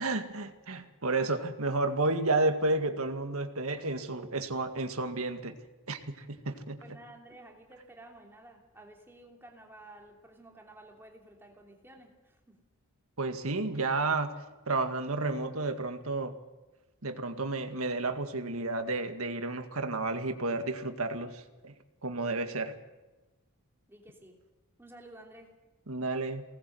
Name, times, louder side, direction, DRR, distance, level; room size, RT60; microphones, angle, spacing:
voice 1, 0.0-5.6 5.9-6.8 13.2-14.3 14.7-16.4 17.0-21.7 22.0-22.7 25.9-26.4, right 2 dB, 75° right, 7 dB, 2.0 m, -31 dB
voice 2, 6.8-12.6 23.9-24.4 24.8-25.6, right 1 dB, 10° right, 1 dB, 3.1 m, -53 dB
23.5 x 19.0 x 7.9 m, 1.1 s
head